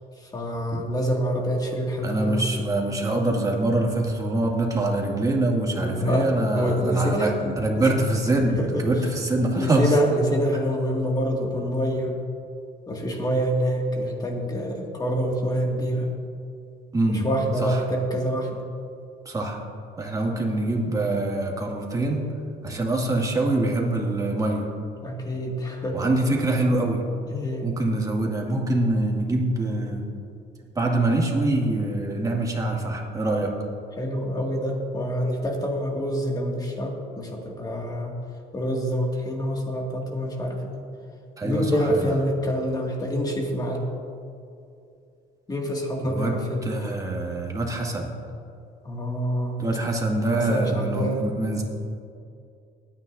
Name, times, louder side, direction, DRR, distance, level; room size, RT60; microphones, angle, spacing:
voice 1, 0.2-2.5 5.7-7.9 8.6-8.9 9.5-12.2 12.9-16.1 17.1-18.6 23.0-23.3 25.0-26.1 27.3-27.7 34.0-38.2 38.5-40.8 41.4-43.9 45.5-46.9 48.8-49.6 50.3-51.3, equal, 20° left, 0 dB, 2.2 m, -26 dB
voice 2, 2.0-9.9 16.9-17.3 17.6-17.8 19.3-19.6 20.0-22.3 22.6-24.7 25.9-27.0 27.6-30.0 30.8-33.5 41.4-41.7 46.0-48.1 49.6-51.6, right 2 dB, 20° right, -1 dB, 2.2 m, -24 dB
20.0 x 9.7 x 2.7 m, 2.5 s
cardioid pair, 110°, 17 cm